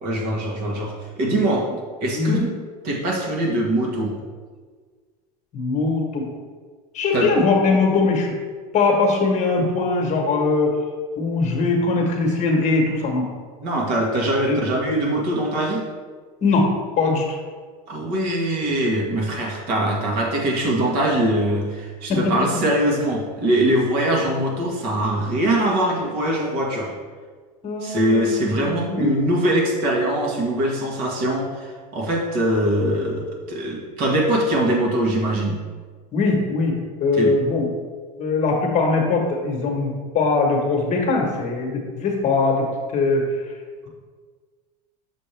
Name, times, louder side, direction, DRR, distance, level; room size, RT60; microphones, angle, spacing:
voice 1, 0.0-1.7 2.0-2.4 2.8-4.2 7.1-7.3 13.6-15.8 17.9-26.9 27.8-35.6 37.1-37.3, right 1 dB, 55° right, -1 dB, 1.6 m, -22 dB
voice 2, 2.1-2.5 5.5-6.3 6.9-8.3 8.7-10.8 11.2-13.3 14.5-14.6 16.4-16.7 17.0-17.4 22.1-22.2 27.6-29.1 36.1-37.7 38.2-43.5, left 3 dB, 35° left, 1 dB, 1.3 m, -21 dB
6.7 x 5.1 x 3.3 m, 1.5 s
supercardioid pair, 115°, 20 cm